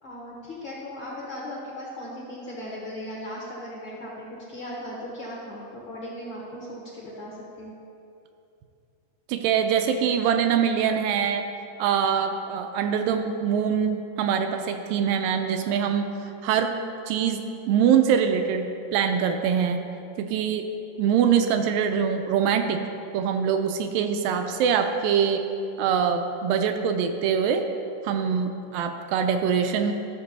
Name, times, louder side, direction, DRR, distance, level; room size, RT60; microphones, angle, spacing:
voice 1, 0.0-7.7, left 1 dB, 65° left, -4 dB, 1.2 m, -37 dB
voice 2, 9.3-11.4 11.8-16.1 16.4-16.8 17.1-17.4 17.7-19.8 20.2-20.7 21.0-22.8 23.1-25.4 25.8-27.6 28.0-29.9, right 7 dB, 80° right, 6 dB, 2.1 m, -23 dB
14.0 x 6.6 x 4.1 m, 2.6 s
omnidirectional pair, 4.3 m